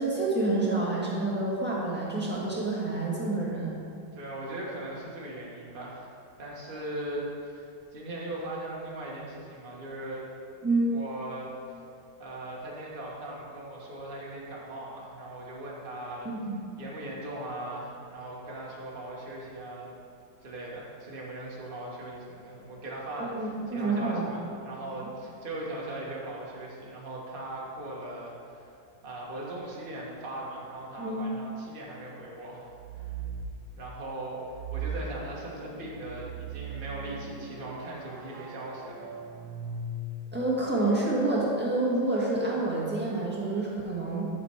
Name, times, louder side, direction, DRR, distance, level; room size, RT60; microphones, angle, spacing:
voice 1, 0.0-3.7 10.6-10.9 16.2-16.7 23.2-24.2 31.0-31.3 40.3-44.3, right 2 dB, 5° right, -6 dB, 1.4 m, -28 dB
voice 2, 4.1-6.1 6.4-10.2 10.9-11.8 12.2-16.3 16.8-19.9 20.4-28.7 29.0-32.7 32.9-33.1 33.7-34.4 34.7-39.2, right 1 dB, 30° right, -4 dB, 1.4 m, -39 dB
sound 1, 32.7-33.6 34.5-40.5, right 4 dB, 75° right, 1.4 m, -39 dB
10.5 x 5.3 x 4.5 m, 2.5 s
omnidirectional pair, 2.1 m